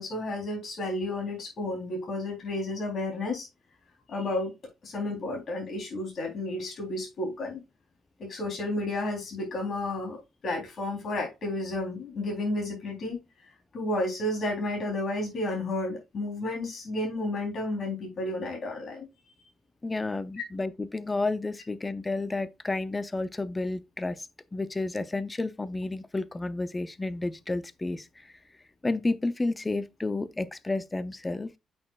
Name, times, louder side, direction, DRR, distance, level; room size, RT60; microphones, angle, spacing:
voice 1, 0.0-3.5 4.1-4.5 4.8-7.6 8.2-10.2 10.4-13.2 13.7-19.1, left 2 dB, 50° left, 3.5 m, -32 dB
voice 2, 19.8-28.1 28.8-31.6, left 2 dB, 20° left, 0.6 m, -31 dB
8.6 x 6.2 x 2.4 m
cardioid pair, 90°, 0 cm